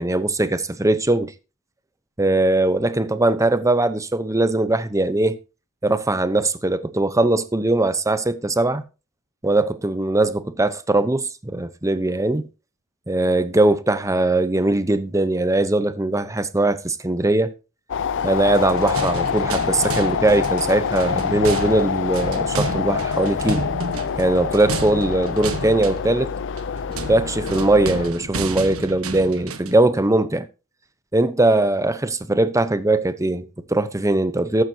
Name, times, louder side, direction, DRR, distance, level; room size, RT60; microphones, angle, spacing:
voice 1, 0.0-1.3 2.2-5.4 5.8-8.8 9.4-12.5 13.1-17.5 18.2-23.7 24.2-26.3 27.1-30.5 31.1-34.6, right 2 dB, 15° right, 0.9 m, -20 dB
sound 1, 17.9-28.1, left 7 dB, 60° left, 0.4 m, -26 dB
sound 2, 18.4-29.8, right 3 dB, 80° right, 1.4 m, -31 dB
14.0 x 11.5 x 2.8 m
head